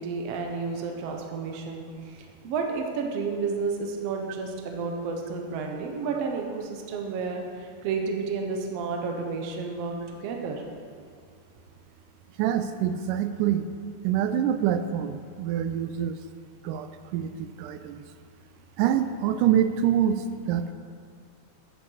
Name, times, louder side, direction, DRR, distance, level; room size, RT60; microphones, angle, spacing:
voice 1, 0.0-9.9 10.2-10.6, right 4 dB, 65° right, 2 dB, 1.7 m, -31 dB
voice 2, 12.4-13.6 14.0-16.2 16.6-18.0 18.8-20.7, right 10 dB, 80° right, 10 dB, 2.0 m, -26 dB
9.0 x 7.1 x 6.4 m, 2.2 s
omnidirectional pair, 4.1 m